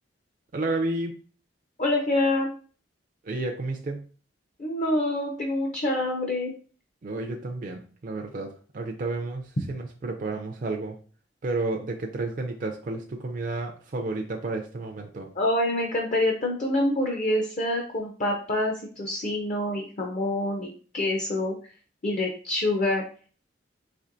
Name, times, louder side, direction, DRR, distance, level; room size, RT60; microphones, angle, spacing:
voice 1, 0.5-1.1 3.2-4.0 7.0-11.0 11.4-15.3, right 2 dB, 45° right, 2 dB, 0.4 m, -31 dB
voice 2, 1.8-2.5 4.6-6.5 15.4-21.5 22.0-23.0, left 1 dB, 40° left, 1 dB, 0.6 m, -26 dB
4.3 x 2.9 x 2.5 m, 0.41 s
head